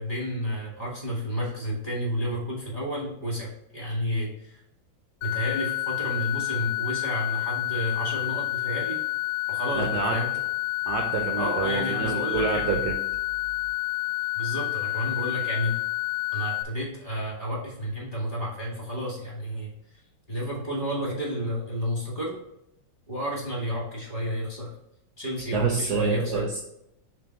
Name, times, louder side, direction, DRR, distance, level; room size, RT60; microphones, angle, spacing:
voice 1, 0.0-4.6 5.2-9.0 9.5-10.3 11.4-12.8 14.4-15.7 16.3-19.7 20.3-22.4 23.1-24.7 25.2-26.5, equal, 25° left, -4 dB, 2.1 m, -31 dB
sound 1, 5.2-16.6, left 20 dB, 80° left, 1.4 m, -29 dB
voice 2, 9.7-10.2 10.8-13.0 25.5-26.6, right 5 dB, 65° right, 2 dB, 1.2 m, -27 dB
6.8 x 3.4 x 4.7 m, 0.81 s
omnidirectional pair, 2.1 m